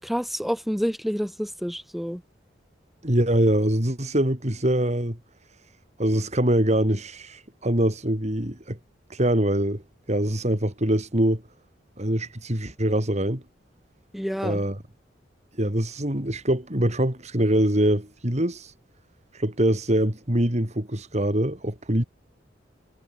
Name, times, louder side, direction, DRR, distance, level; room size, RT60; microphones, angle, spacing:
voice 1, 0.0-2.2 14.1-14.6, equal, ahead, 7.1 m, -28 dB
voice 2, 3.0-5.2 6.0-8.8 9.1-9.8 10.1-11.4 12.0-13.4 14.4-14.8 15.6-18.7 19.3-22.0, right 1 dB, 40° right, 4.0 m, -23 dB
head